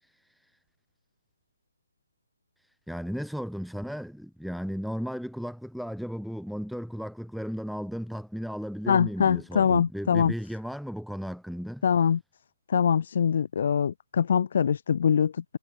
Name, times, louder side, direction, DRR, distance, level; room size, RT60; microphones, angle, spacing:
voice 1, 2.9-11.8, equal, ahead, 3.6 m, -35 dB
voice 2, 8.9-10.3 11.8-12.2 12.7-15.6, left 7 dB, 45° left, 1.2 m, -23 dB
figure-of-eight pair, 145°, 0 cm